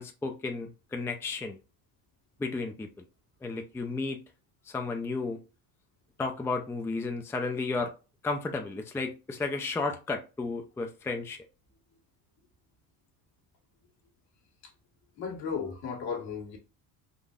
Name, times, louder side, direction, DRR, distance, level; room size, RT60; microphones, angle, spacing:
voice 1, 0.0-1.6 2.4-2.9 3.4-4.2 4.7-5.4 6.2-7.9 8.2-11.4, left 3 dB, 5° left, 0.4 m, -33 dB
voice 2, 15.2-16.6, left 6 dB, 65° left, 1.4 m, -35 dB
3.8 x 2.6 x 2.4 m
supercardioid pair, 80°, 39 cm